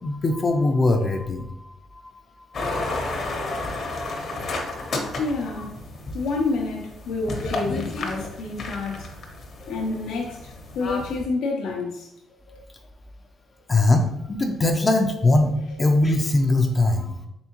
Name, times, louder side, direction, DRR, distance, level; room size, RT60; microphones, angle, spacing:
voice 1, 0.0-3.0 9.6-9.7 12.5-12.6 13.7-17.2, left 2 dB, 30° left, 3 dB, 0.4 m, -22 dB
sound 1, 2.5-11.2, left 2 dB, 55° left, 0.8 m, -32 dB
voice 2, 5.2-5.7 6.1-9.1 9.7-12.1, left 3 dB, 85° left, -1 dB, 0.5 m, -28 dB
3.5 x 3.5 x 2.9 m, 0.83 s
cardioid pair, 90°, 0 cm